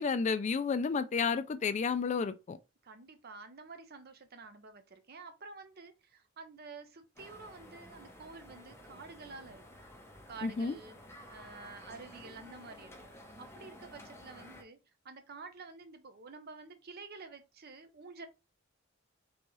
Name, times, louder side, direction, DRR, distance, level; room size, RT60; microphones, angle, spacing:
voice 1, 0.0-2.6 10.4-10.7, left 5 dB, 35° left, 0.3 m, -31 dB
voice 2, 2.8-9.6 10.3-11.0 11.3-13.1 13.4-14.8 15.0-18.3, right 4 dB, 50° right, 0.8 m, -50 dB
sound 1, 7.2-14.6, left 1 dB, 15° left, 0.9 m, -53 dB
4.0 x 3.6 x 3.1 m
head